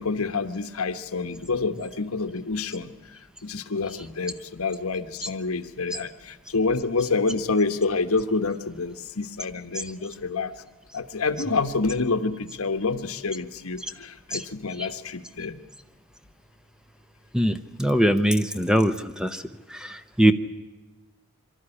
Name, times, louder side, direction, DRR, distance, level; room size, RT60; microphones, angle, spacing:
voice 1, 0.0-2.9 3.4-10.5 10.9-15.6, left 4 dB, 80° left, 10 dB, 1.2 m, -27 dB
voice 2, 17.3-18.9 19.2-19.3 20.2-20.3, right 1 dB, 5° right, 10 dB, 0.7 m, -20 dB
24.0 x 13.0 x 9.9 m, 1.2 s
head